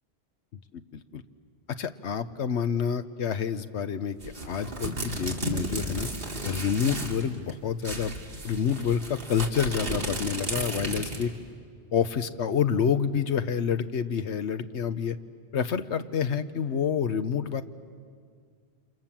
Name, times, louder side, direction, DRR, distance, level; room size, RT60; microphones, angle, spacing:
voice 1, 1.8-4.2 4.5-6.1 6.4-8.2 8.4-11.3 11.9-15.2 15.5-17.6, left 7 dB, 90° left, 11 dB, 1.2 m, -28 dB
sound 1, 4.2-7.2 7.5-7.6 7.8-11.4, right 1 dB, 55° right, 2.6 m, -34 dB
28.5 x 27.5 x 7.4 m, 2.1 s
omnidirectional pair, 1.1 m